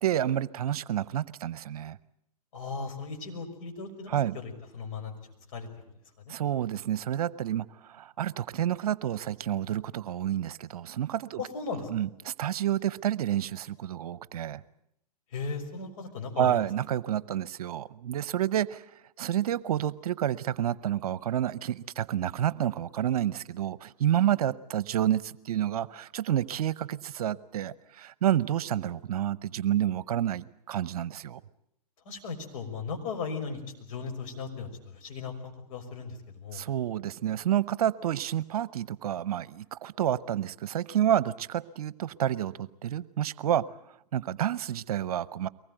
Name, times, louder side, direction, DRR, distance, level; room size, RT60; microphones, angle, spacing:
voice 1, 0.0-2.0 4.1-4.4 6.3-11.4 11.7-14.6 16.4-18.8 19.2-31.4 36.5-43.6 44.1-45.5, right 11 dB, 65° right, 19 dB, 0.9 m, -29 dB
voice 2, 2.5-5.1 5.5-5.7 6.3-6.4 11.4-12.1 15.3-16.6 32.1-33.6 33.9-36.6, left 4 dB, 55° left, 4 dB, 5.8 m, -37 dB
23.5 x 20.0 x 9.1 m, 0.78 s
hypercardioid pair, 125°, 20 cm